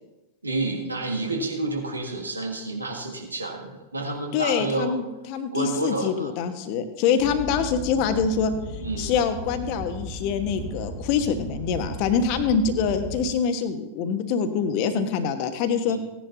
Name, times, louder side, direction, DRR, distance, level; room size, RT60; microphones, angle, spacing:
voice 1, 0.4-4.9 5.5-6.3 8.8-9.1 15.9-16.0, right 2 dB, 80° right, 1 dB, 1.8 m, -29 dB
voice 2, 4.3-8.5 9.0-16.0, left 6 dB, 45° left, 8 dB, 1.1 m, -25 dB
sound 1, 7.2-13.3, equal, ahead, 1.6 m, -36 dB
17.0 x 10.5 x 2.8 m, 0.99 s
figure-of-eight pair, 90°, 0 cm